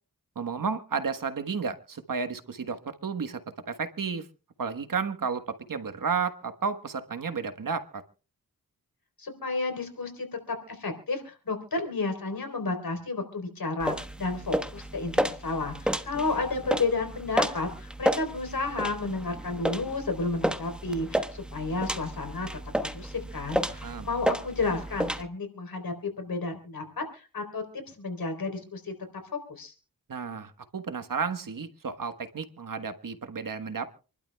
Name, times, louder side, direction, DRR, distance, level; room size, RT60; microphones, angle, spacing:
voice 1, 0.3-3.4 3.7-4.3 4.6-8.0 23.7-24.1 30.1-33.9, right 5 dB, 65° right, 9 dB, 1.4 m, -32 dB
voice 2, 9.2-22.5 22.8-27.6 27.9-28.9 29.5-29.7, left 3 dB, 75° left, 5 dB, 3.9 m, -32 dB
sound 1, 13.8-25.2, right 1 dB, 5° right, 1.2 m, -32 dB
27.5 x 12.0 x 2.3 m, 0.35 s
wide cardioid pair, 65°, 35 cm